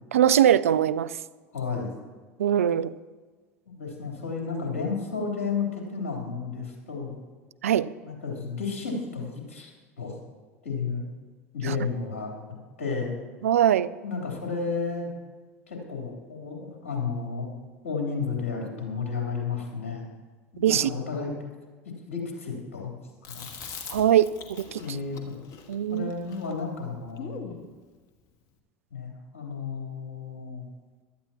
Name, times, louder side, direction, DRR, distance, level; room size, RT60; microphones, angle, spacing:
voice 1, 0.1-1.1 2.4-2.9 7.6-7.9 11.7-11.8 13.4-13.9 20.6-20.9 23.9-24.8 25.7-26.1, right 10 dB, 80° right, 16 dB, 0.4 m, -22 dB
voice 2, 1.5-1.9 3.7-7.1 8.0-9.7 10.0-10.2 10.6-11.0 11.5-12.3 12.8-13.2 14.0-15.1 15.7-17.5 17.8-20.1 20.6-21.3 22.1-22.9 23.3-23.5 24.8-25.3 25.9-27.5 28.9-30.6, left 5 dB, 75° left, 0 dB, 3.4 m, -32 dB
Chewing mastication, 23.2-27.6, left 6 dB, 50° left, 1.6 m, -42 dB
17.0 x 12.5 x 2.9 m, 1.4 s
hypercardioid pair, 75°, 8 cm